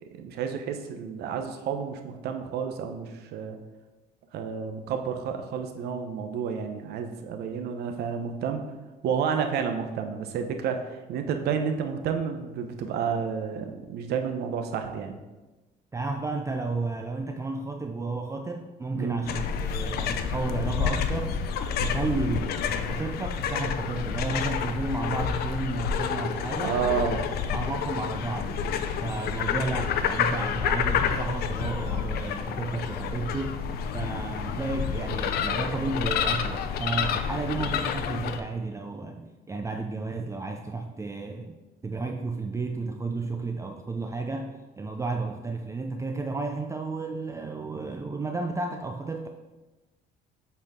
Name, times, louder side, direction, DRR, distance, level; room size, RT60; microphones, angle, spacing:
voice 1, 0.0-3.6 4.3-8.6 9.0-15.2 19.0-19.2 26.6-27.2, right 7 dB, 75° right, 6 dB, 0.8 m, -30 dB
voice 2, 15.9-21.4 21.8-26.8 27.5-41.6 41.8-49.3, right 3 dB, 20° right, 4 dB, 0.4 m, -32 dB
sound 1, 19.3-38.4, left 7 dB, 70° left, 0.5 m, -29 dB
8.1 x 4.3 x 3.7 m, 1.1 s
cardioid pair, 110°, 17 cm